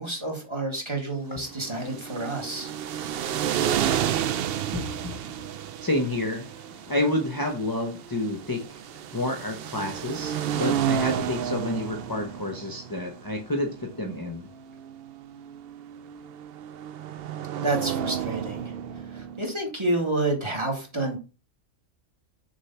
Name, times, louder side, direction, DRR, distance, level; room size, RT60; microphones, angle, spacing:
voice 1, 0.0-2.7 17.6-18.7 19.1-21.2, right 2 dB, 20° right, 0 dB, 2.1 m, -29 dB
sound 1, 1.5-19.4, right 9 dB, 65° right, 0.6 m, -31 dB
voice 2, 2.9-14.5, left 1 dB, 20° left, 3 dB, 0.9 m, -30 dB
6.7 x 3.7 x 5.7 m, 0.33 s
omnidirectional pair, 1.4 m